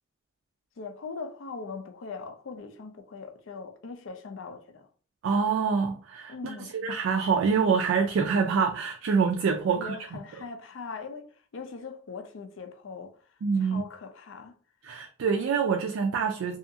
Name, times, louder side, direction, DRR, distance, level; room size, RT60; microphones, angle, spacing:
voice 1, 0.8-4.9 6.3-6.8 9.6-14.5, left 4 dB, 70° left, 0.4 m, -41 dB
voice 2, 5.2-10.0 13.4-13.8 14.8-16.6, right 5 dB, 75° right, 0.3 m, -26 dB
2.7 x 2.4 x 2.6 m
head